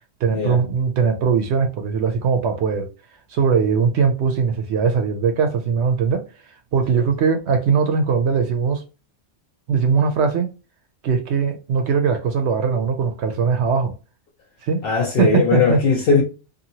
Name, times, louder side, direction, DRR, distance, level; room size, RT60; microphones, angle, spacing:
voice 1, 0.2-2.9 3.3-6.3 6.7-8.8 9.7-10.5 11.0-13.9 14.6-14.8 15.2-15.8, right 6 dB, 75° right, 0.8 m, -20 dB
voice 2, 14.8-16.2, left 5 dB, 60° left, 0.8 m, -19 dB
2.7 x 2.6 x 2.8 m
omnidirectional pair, 1.1 m